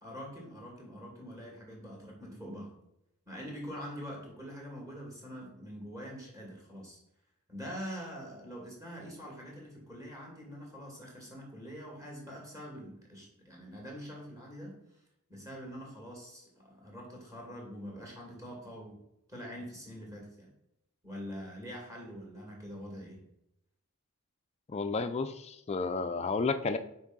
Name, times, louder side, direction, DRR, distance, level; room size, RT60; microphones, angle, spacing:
voice 1, 0.0-2.7 3.3-7.0 7.5-15.0 15.3-19.0 19.3-20.5 21.0-23.2, equal, 15° right, -2 dB, 2.3 m, -44 dB
voice 2, 24.7-26.8, left 4 dB, 30° left, 9 dB, 0.3 m, -31 dB
6.0 x 4.5 x 4.0 m, 0.82 s
head